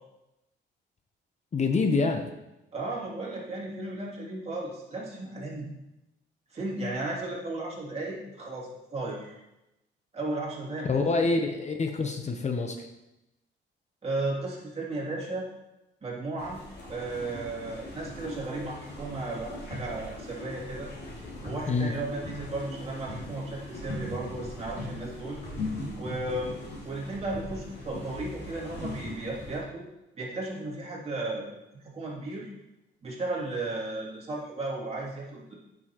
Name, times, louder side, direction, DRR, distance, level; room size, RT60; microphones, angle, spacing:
voice 1, 1.5-2.3 10.8-12.9 21.7-21.9, left 3 dB, 35° left, 5 dB, 0.8 m, -26 dB
voice 2, 2.7-5.7 6.5-9.4 10.1-11.3 14.0-15.5 16.0-16.6 16.9-20.9 21.4-25.4 26.0-26.5 26.8-29.9 30.2-31.4 31.8-32.5 33.0-35.5, right 2 dB, 30° right, -5 dB, 2.8 m, -35 dB
sound 1, 16.4-29.6, left 2 dB, 55° left, 2.7 m, -40 dB
8.9 x 6.3 x 3.0 m, 0.93 s
cardioid pair, 90°, 20 cm